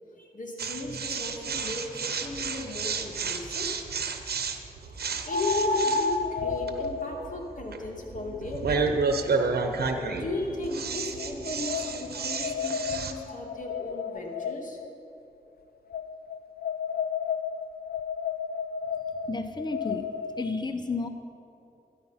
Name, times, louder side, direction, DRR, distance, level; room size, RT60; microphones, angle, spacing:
voice 1, 0.2-3.7 4.9-8.9 10.1-14.8, left 2 dB, 55° left, 0 dB, 2.2 m, -36 dB
sound 1, 0.6-13.1, right 4 dB, 80° right, 0.9 m, -31 dB
sound 2, 2.7-2.8 5.3-10.4 11.2-14.9 15.9-20.5, left 5 dB, 75° left, 0.6 m, -33 dB
Organ, 7.9-14.5, left 5 dB, 20° right, 2.2 m, -50 dB
voice 2, 19.3-21.1, left 3 dB, 25° left, 7 dB, 0.8 m, -32 dB
13.5 x 10.5 x 5.7 m, 2.8 s
cardioid pair, 50°, 16 cm